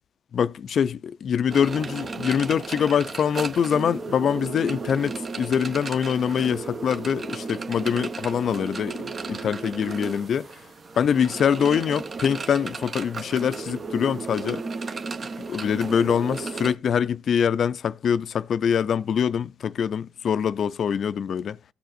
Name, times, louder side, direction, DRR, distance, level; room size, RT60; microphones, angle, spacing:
voice 1, 0.3-10.5 11.0-14.6 15.5-21.6, left 8 dB, 60° left, 0.4 m, -24 dB
sound 1, 1.5-16.7, right 4 dB, 40° right, 0.7 m, -34 dB
14.5 x 6.6 x 2.5 m
cardioid pair, 90°, 0 cm